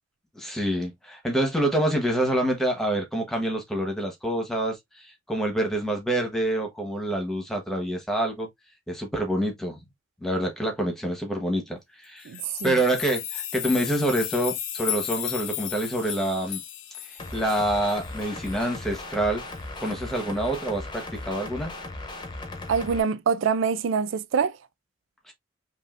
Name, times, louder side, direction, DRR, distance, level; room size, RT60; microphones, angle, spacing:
voice 1, 0.3-8.5 8.9-9.8 10.2-12.3 12.6-16.6 17.3-19.4 19.8-21.7 25.3-25.4, right 1 dB, ahead, 1.2 m, -27 dB
sound 1, 12.2-19.0 19.5-19.6 19.9-20.0 20.5-20.6, left 11 dB, 80° left, 0.6 m, -35 dB
voice 2, 12.3-12.8 22.7-24.6, right 6 dB, 80° right, 0.4 m, -25 dB
sound 2, 17.2-23.0, left 2 dB, 20° left, 0.9 m, -37 dB
5.4 x 2.6 x 2.5 m
head